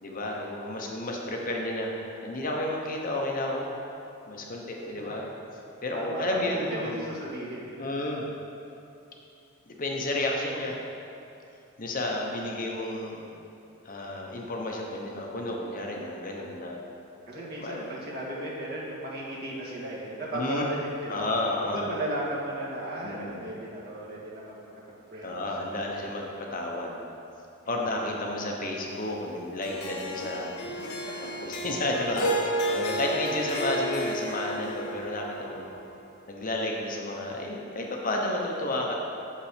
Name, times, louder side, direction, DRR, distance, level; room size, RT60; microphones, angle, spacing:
voice 1, 0.0-1.9 2.2-3.7 4.3-5.3 5.8-7.1 7.8-8.2 9.7-10.7 11.8-13.3 13.8-16.8 17.4-17.9 20.3-20.6 21.1-21.9 23.0-23.4 25.2-27.0 27.7-30.6 31.4-32.3 32.7-35.7 36.3-38.9, left 1 dB, 40° left, -1 dB, 0.8 m, -31 dB
voice 2, 5.9-7.8 17.3-21.2 21.7-24.8 25.1-25.3 25.6-26.0 27.6-28.0 32.1-32.4, right 1 dB, 45° right, -5 dB, 1.6 m, -35 dB
Harp, 29.6-36.0, right 1 dB, 80° left, 0.9 m, -32 dB
7.3 x 5.6 x 5.0 m, 2.8 s
head